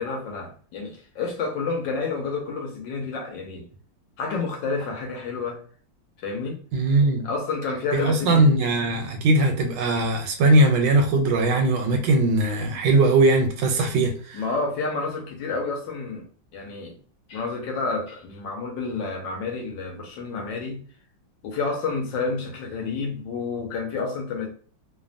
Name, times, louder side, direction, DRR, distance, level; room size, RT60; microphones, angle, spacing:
voice 1, 0.0-3.7 4.2-5.6 6.2-6.6 7.2-8.5 14.3-16.2 16.5-16.9 17.3-20.8 21.4-24.5, left 4 dB, 75° left, 1.4 m, -29 dB
voice 2, 6.7-7.3 7.9-14.4, right 2 dB, 75° right, 1.2 m, -20 dB
3.3 x 2.1 x 2.4 m
omnidirectional pair, 2.1 m